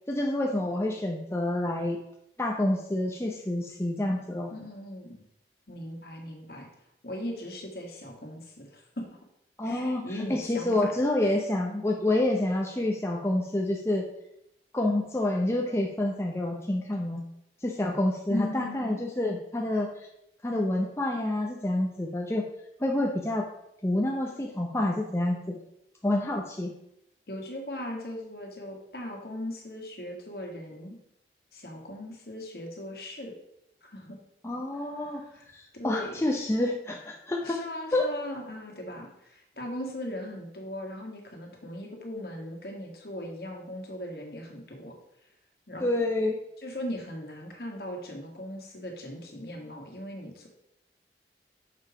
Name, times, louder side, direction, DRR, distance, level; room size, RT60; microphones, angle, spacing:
voice 1, 0.1-2.0 2.4-4.5 9.6-10.0 10.3-14.1 14.7-17.2 17.6-20.1 20.4-22.5 22.8-23.5 23.8-25.6 26.0-26.7 34.4-35.2 35.5-37.6 37.9-38.1 45.8-46.4, left 1 dB, 15° left, 0 dB, 0.6 m, -28 dB
voice 2, 4.5-5.2 5.7-6.7 7.0-9.0 9.6-10.9 11.2-11.3 18.3-19.1 27.3-31.0 31.5-33.3 33.8-34.2 35.0-35.5 35.7-36.2 37.4-44.9 45.7-45.9 46.6-50.5, left 1 dB, 60° left, 1 dB, 1.7 m, -38 dB
6.6 x 5.4 x 4.9 m, 0.79 s
head